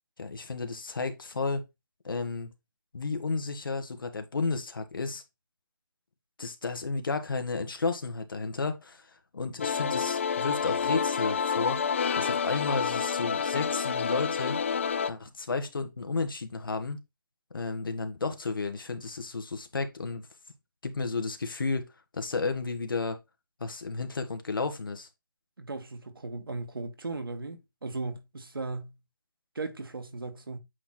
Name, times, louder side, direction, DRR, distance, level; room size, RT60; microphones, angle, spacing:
voice 1, 0.2-1.6 2.0-2.5 2.9-5.2 6.4-11.8 12.1-14.6 15.1-17.0 17.5-20.3 20.8-23.2 23.6-25.1, left 4 dB, 75° left, 1.4 m, -32 dB
sound 1, 9.6-15.1, left 6 dB, 35° left, 0.5 m, -29 dB
voice 2, 25.6-28.9 29.5-30.6, right 3 dB, 85° right, 1.6 m, -37 dB
8.3 x 3.1 x 4.0 m
hypercardioid pair, 165°, 12 cm